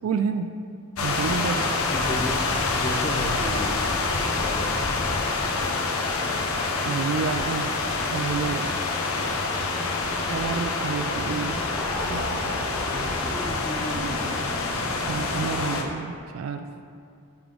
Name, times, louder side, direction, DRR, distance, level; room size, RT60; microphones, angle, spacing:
voice 1, 0.0-0.5 1.0-1.8 6.8-7.8 8.1-8.8 10.3-11.6 12.1-12.7 15.0-16.7, right 5 dB, 80° right, 8 dB, 0.3 m, -29 dB
sound 1, 1.0-15.8, left 3 dB, 90° left, 0.7 m, -26 dB
voice 2, 1.9-3.8 4.4-4.9, left 2 dB, 35° left, 4 dB, 0.5 m, -33 dB
sound 2, 11.1-15.9, equal, 10° right, 0.9 m, -36 dB
10.5 x 3.5 x 3.8 m, 2.3 s
head